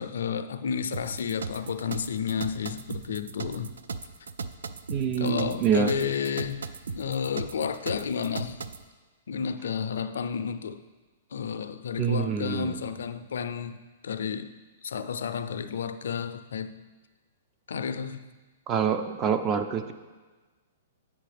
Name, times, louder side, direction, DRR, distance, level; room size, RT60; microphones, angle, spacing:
voice 1, 0.0-3.8 5.2-6.7 6.9-8.7 9.3-10.8 11.3-14.6 14.8-16.8 17.7-18.3 19.0-19.1, left 7 dB, 80° left, 0.4 m, -31 dB
sound 1, 0.9-8.8, right 4 dB, 90° right, 0.3 m, -37 dB
voice 2, 4.9-5.9 12.0-12.7 18.7-19.9, right 7 dB, 25° right, 0.4 m, -26 dB
8.4 x 6.2 x 3.4 m
hypercardioid pair, 140°, 0 cm